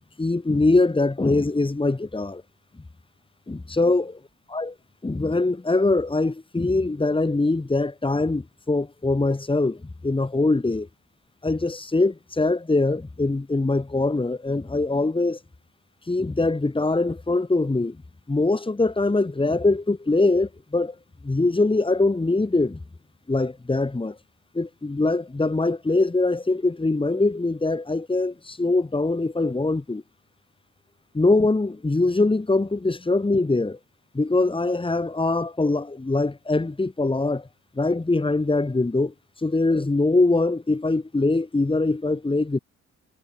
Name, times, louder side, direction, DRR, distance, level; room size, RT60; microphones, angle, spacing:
voice 1, 0.2-2.4 3.5-4.2 4.5-4.7 5.0-10.9 11.4-15.4 16.1-18.0 18.3-21.0 21.2-22.8 23.3-24.2 24.5-30.0 31.1-33.8 34.1-37.5 37.8-42.6, left 2 dB, 15° left, 4.4 m, -23 dB
cardioid pair, 90°, 30 cm